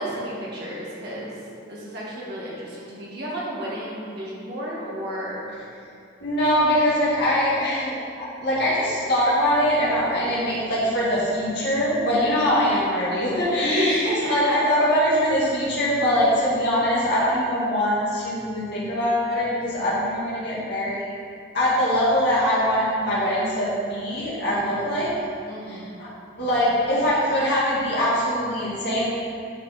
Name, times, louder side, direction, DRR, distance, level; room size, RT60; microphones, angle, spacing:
voice 1, 0.0-1.4 1.7-5.5 12.1-12.3 13.6-14.6 24.5-24.7 25.5-25.8, equal, 55° right, -6 dB, 1.9 m, -31 dB
voice 2, 6.2-14.0 14.3-21.1 21.5-25.1 25.7-26.1 26.4-29.1, equal, 55° left, -9 dB, 2.0 m, -22 dB
10.0 x 5.1 x 4.3 m, 2.4 s
head